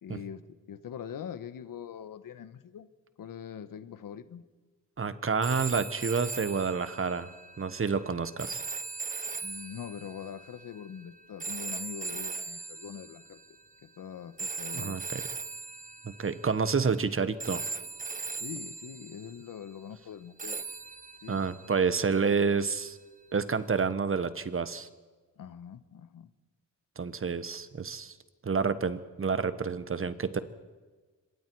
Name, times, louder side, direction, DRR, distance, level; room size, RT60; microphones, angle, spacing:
voice 1, 0.0-0.4 0.7-2.9 3.2-4.4 9.4-13.4 13.8-15.0 18.3-20.6 21.2-21.4 22.3-22.7 25.4-26.3, left 8 dB, 90° left, 13 dB, 1.1 m, -43 dB
voice 2, 5.0-7.3 7.6-8.6 14.7-15.2 16.0-17.6 21.3-22.9 23.3-24.9 27.0-28.1 28.4-30.4, right 5 dB, 40° right, 13 dB, 1.2 m, -29 dB
sound 1, 5.4-13.6 14.4-17.1 17.4-19.5 20.4-22.6 23.8-23.9, right 4 dB, 25° right, 0.7 m, -40 dB
26.0 x 22.0 x 4.7 m, 1.3 s
cardioid pair, 85°, 32 cm